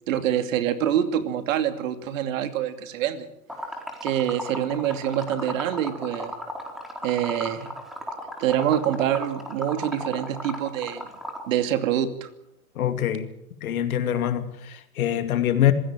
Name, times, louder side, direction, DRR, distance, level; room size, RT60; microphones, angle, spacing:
voice 1, 0.1-3.3 4.0-6.3 7.0-7.7 8.4-11.1 11.5-12.3, right 10 dB, 60° right, 2.7 m, -25 dB
Liquid, 3.5-11.5, left 1 dB, ahead, 4.2 m, -35 dB
voice 2, 12.8-13.3 13.6-15.7, left 11 dB, 70° left, 2.7 m, -24 dB
26.0 x 17.0 x 7.6 m
hypercardioid pair, 110°, 44 cm